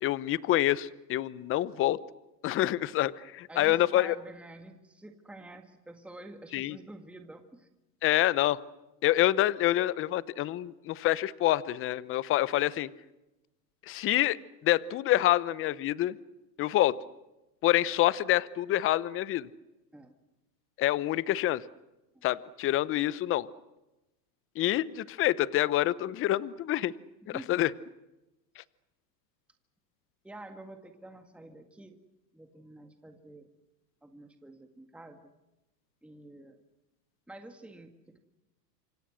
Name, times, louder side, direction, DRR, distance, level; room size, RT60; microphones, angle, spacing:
voice 1, 0.0-2.0 2.4-4.1 6.5-6.8 8.0-8.6 9.0-12.9 13.9-14.4 14.6-16.2 16.6-17.0 17.6-19.5 20.8-21.6 22.2-23.5 24.6-26.9 27.3-27.7 28.6-28.7, left 14 dB, 25° left, 19 dB, 0.8 m, -27 dB
voice 2, 3.5-7.7 19.9-20.2 27.3-27.6 30.2-32.0 32.3-33.5 34.0-35.3 36.0-36.6 37.3-38.2, right 2 dB, ahead, 5 dB, 1.9 m, -48 dB
28.0 x 26.0 x 6.3 m, 1.0 s
hypercardioid pair, 120°, 50 cm